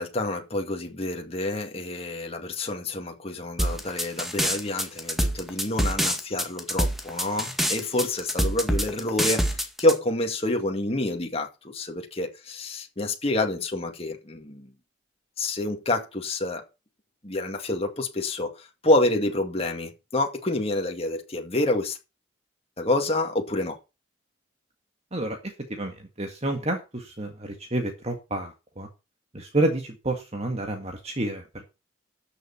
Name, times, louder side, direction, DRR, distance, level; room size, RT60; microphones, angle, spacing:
voice 1, 0.0-14.7 15.4-16.7 17.2-22.0 22.8-23.8, left 2 dB, 30° left, 2.2 m, -28 dB
sound 1, 3.6-9.9, equal, ahead, 1.8 m, -25 dB
voice 2, 25.1-28.9 29.3-31.7, right 1 dB, 35° right, 1.8 m, -29 dB
13.0 x 6.8 x 5.8 m
head